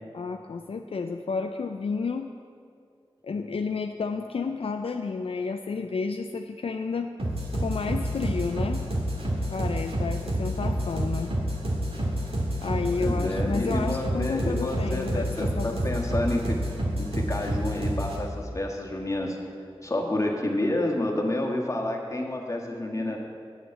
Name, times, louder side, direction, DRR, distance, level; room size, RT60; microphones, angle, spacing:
voice 1, 0.1-2.3 3.2-7.1 7.6-8.8 9.5-11.3 12.6-15.8, left 4 dB, 75° left, 5 dB, 0.4 m, -31 dB
sound 1, 7.2-18.2, right 1 dB, 75° right, 1.9 m, -29 dB
voice 2, 12.9-16.6 17.0-19.5 19.8-23.2, left 1 dB, 30° left, 1 dB, 1.5 m, -29 dB
9.0 x 7.0 x 7.7 m, 2.3 s
wide cardioid pair, 90°, 10 cm